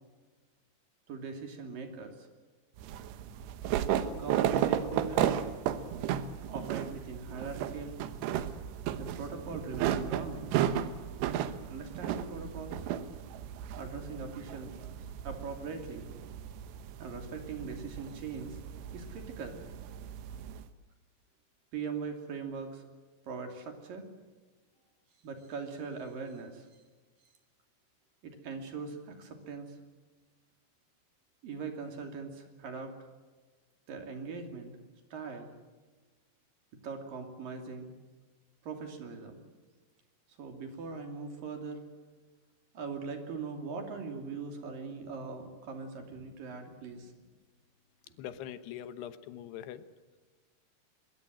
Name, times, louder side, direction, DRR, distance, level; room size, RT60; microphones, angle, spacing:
voice 1, 1.1-2.2 4.1-5.3 6.5-8.0 9.0-10.7 11.7-12.8 13.8-16.1 17.0-18.6 18.9-19.6 21.7-22.8 23.3-24.1 25.2-26.7 28.2-29.8 31.4-33.0 33.9-34.7 35.1-35.5 36.8-37.9 38.6-39.4 40.4-41.8 42.7-47.1, right 5 dB, 60° right, 4 dB, 4.2 m, -41 dB
sound 1, 2.8-20.6, right 10 dB, 85° right, 3.2 m, -34 dB
voice 2, 48.2-49.9, left 10 dB, 80° left, 12 dB, 3.1 m, -42 dB
24.5 x 22.0 x 7.6 m, 1.4 s
omnidirectional pair, 4.8 m